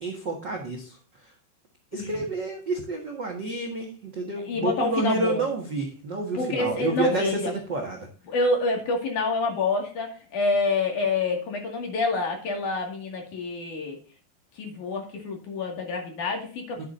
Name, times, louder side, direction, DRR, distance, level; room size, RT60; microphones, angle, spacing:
voice 1, 0.0-0.9 1.9-7.2 7.7-8.1 16.8-16.9, right 3 dB, 70° right, 0 dB, 1.0 m, -29 dB
voice 2, 1.9-2.2 4.4-5.4 6.3-7.5 8.3-14.0 14.6-16.9, left 3 dB, 55° left, 1 dB, 3.2 m, -27 dB
10.5 x 8.4 x 2.6 m, 0.39 s
omnidirectional pair, 4.7 m